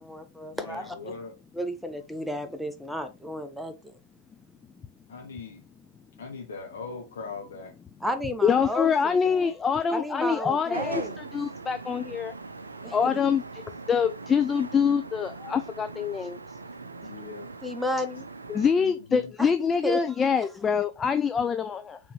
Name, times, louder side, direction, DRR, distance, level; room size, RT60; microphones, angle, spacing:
voice 1, 0.0-1.0 1.5-4.0 8.0-9.5 9.9-11.2 12.8-13.2 17.6-18.3 19.4-19.5 19.8-20.0, left 1 dB, ahead, 0.7 m, -33 dB
voice 2, 0.5-1.3 5.1-5.6 6.2-7.7 17.0-17.5 18.7-19.3, left 4 dB, 65° left, 1.0 m, -40 dB
voice 3, 8.4-12.3 12.9-13.6 13.9-16.4 18.5-22.0, left 6 dB, 20° left, 0.3 m, -25 dB
sound 1, 10.7-18.7, right 3 dB, 80° right, 0.4 m, -40 dB
4.7 x 3.4 x 3.1 m
figure-of-eight pair, 90°, 0 cm